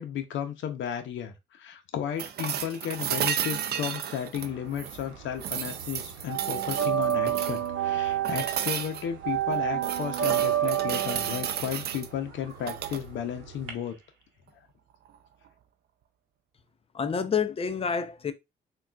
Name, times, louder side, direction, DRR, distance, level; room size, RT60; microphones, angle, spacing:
voice 1, 0.0-14.0, left 9 dB, 75° left, 0.6 m, -34 dB
sound 1, 2.2-5.0 5.4-7.7 8.2-9.0 9.5-12.1 12.6-13.0 15.1-15.2, right 9 dB, 55° right, 0.4 m, -33 dB
sound 2, 4.4-5.5 5.8-13.7, right 11 dB, 90° right, 0.9 m, -29 dB
voice 2, 16.9-18.3, left 6 dB, 30° left, 0.4 m, -28 dB
3.6 x 2.3 x 2.2 m
cardioid pair, 90°, 20 cm